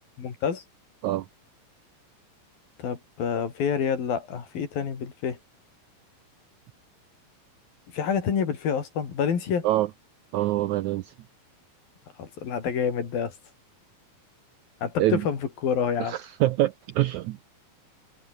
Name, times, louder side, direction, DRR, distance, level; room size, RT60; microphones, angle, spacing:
voice 1, 0.2-0.6 2.8-5.4 7.9-9.7 12.2-13.3 14.8-16.2, left 7 dB, 75° left, 5.3 m, -28 dB
voice 2, 10.3-11.1 15.0-15.2 16.0-17.5, right 15 dB, 80° right, 1.7 m, -25 dB
omnidirectional pair, 4.2 m